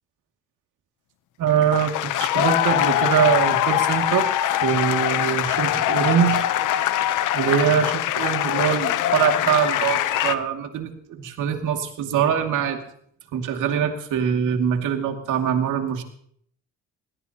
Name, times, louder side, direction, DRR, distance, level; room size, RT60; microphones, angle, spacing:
voice 1, 1.4-4.3 4.6-6.4 7.3-12.8 13.3-16.0, right 8 dB, 85° right, 4 dB, 2.4 m, -23 dB
sound 1, 1.5-10.3, left 12 dB, 85° left, 0.9 m, -23 dB
21.5 x 18.0 x 2.9 m, 0.64 s
cardioid pair, 90°, 30 cm